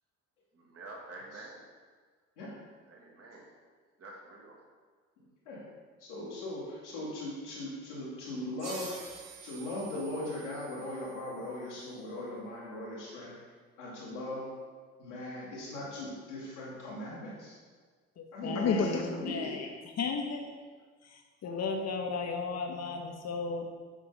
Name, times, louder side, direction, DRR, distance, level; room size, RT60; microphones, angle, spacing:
voice 1, 0.5-1.7 2.9-3.5 4.0-4.6, right 2 dB, 40° right, -1 dB, 1.9 m, -48 dB
voice 2, 6.0-8.9 9.4-13.3 13.8-14.5 15.0-17.5 18.3-19.5, left 1 dB, 90° left, -9 dB, 2.0 m, -39 dB
sound 1, 8.6-11.8, right 4 dB, 65° right, 1.6 m, -48 dB
voice 3, 18.2-19.7 20.0-20.5 21.0-23.8, left 4 dB, 45° left, 4 dB, 1.1 m, -33 dB
7.4 x 5.1 x 4.0 m, 1.5 s
hypercardioid pair, 50°, 35 cm